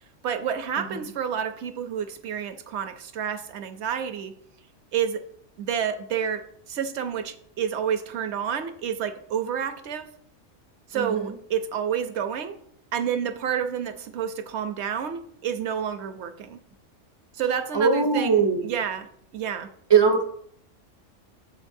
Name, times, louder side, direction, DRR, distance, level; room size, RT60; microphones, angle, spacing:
voice 1, 0.2-4.3 4.9-5.2 5.6-10.1 10.9-12.6 12.9-16.6 17.3-19.7, right 8 dB, 65° right, 9 dB, 0.9 m, -29 dB
voice 2, 10.9-11.3 17.7-18.8 19.9-20.2, right 5 dB, 40° right, 6 dB, 0.3 m, -21 dB
13.5 x 4.5 x 2.6 m, 0.67 s
omnidirectional pair, 1.3 m